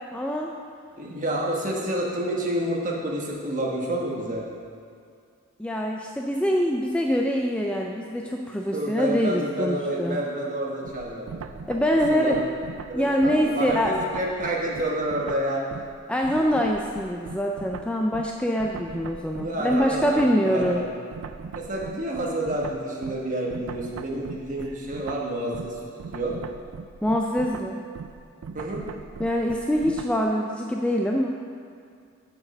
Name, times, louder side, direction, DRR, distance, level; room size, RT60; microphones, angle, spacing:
voice 1, 0.1-0.5 5.6-10.2 11.7-12.4 12.9-14.0 16.1-20.9 27.0-27.9 29.2-31.4, equal, 5° left, 0 dB, 0.3 m, -24 dB
voice 2, 1.0-4.5 8.7-11.3 12.1-12.4 12.9-15.6 19.4-20.9 21.5-25.8 26.1-26.3 28.5-28.8, right 1 dB, 40° right, -3 dB, 1.3 m, -29 dB
sound 1, 10.8-16.0 16.2-30.2, right 5 dB, 80° right, 0.4 m, -40 dB
7.1 x 5.4 x 6.6 m, 2.3 s
head